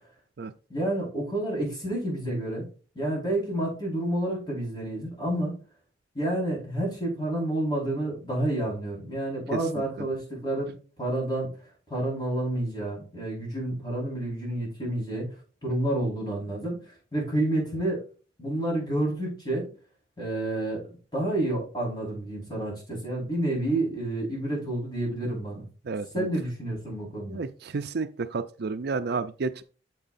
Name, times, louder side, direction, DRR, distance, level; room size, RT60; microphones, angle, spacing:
voice 1, 0.7-2.7 2.9-5.6 6.1-18.0 18.4-19.7 20.2-25.7 26.1-27.4, right 1 dB, 25° left, 4.6 m, -29 dB
voice 2, 25.9-26.3 27.3-29.6, right 4 dB, 60° right, 0.5 m, -31 dB
9.3 x 7.3 x 2.6 m
head